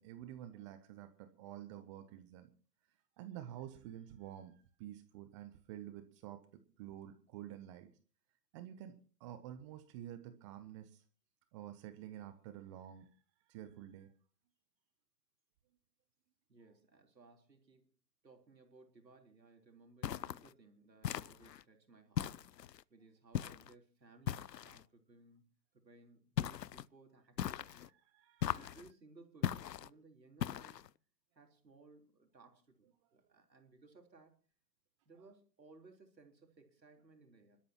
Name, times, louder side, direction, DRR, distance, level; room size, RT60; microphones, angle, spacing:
voice 1, 0.0-2.5 3.2-7.9 8.5-8.9 9.2-11.0 11.5-13.1 13.5-14.1 28.1-28.7, right 11 dB, 20° right, 10 dB, 0.7 m, -49 dB
voice 2, 16.5-18.0 18.2-22.3 22.9-25.4 25.8-27.9 28.5-30.8 31.3-32.9 33.1-34.4 35.1-37.6, right 3 dB, 80° right, 4 dB, 3.8 m, -62 dB
sound 1, 20.0-20.5 21.0-21.6 22.2-22.8 23.3-23.7 24.3-24.8 26.4-26.9 27.4-27.9 28.4-28.9 29.4-29.9 30.4-30.9, left 10 dB, 75° left, 0.6 m, -39 dB
26.5 x 12.5 x 2.9 m, 0.38 s
figure-of-eight pair, 125°, 50 cm